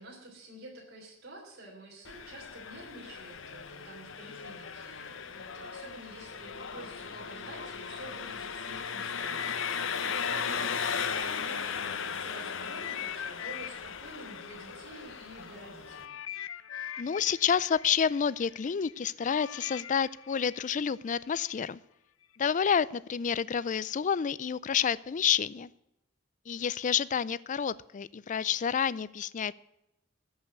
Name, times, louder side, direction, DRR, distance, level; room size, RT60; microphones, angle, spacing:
voice 1, 0.0-16.2, right 1 dB, 55° right, -3 dB, 3.5 m, -49 dB
Engine, 2.0-16.1, left 6 dB, 70° left, 0.9 m, -37 dB
sound 1, 9.1-12.1 12.5-21.5 22.2-22.4, left 11 dB, 90° left, 0.6 m, -43 dB
voice 2, 17.0-21.8 22.4-25.7 26.5-29.5, left 7 dB, 40° left, 20 dB, 0.4 m, -29 dB
14.0 x 5.6 x 9.2 m, 0.87 s
head